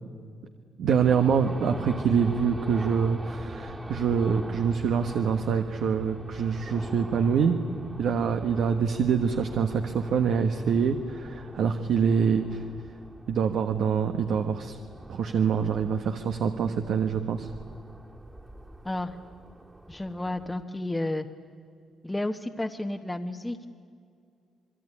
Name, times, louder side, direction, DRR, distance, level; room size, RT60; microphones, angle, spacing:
voice 1, 0.8-7.6 8.0-12.6 13.3-14.8 15.1-17.5, right 6 dB, 70° right, 6 dB, 1.3 m, -25 dB
sound 1, 1.0-20.6, right 1 dB, 15° right, 2.1 m, -43 dB
voice 2, 18.8-19.2 19.9-21.3 22.0-23.7, left 1 dB, 10° left, 4 dB, 1.1 m, -31 dB
27.0 x 22.0 x 9.9 m, 2.2 s
cardioid pair, 90°, 0 cm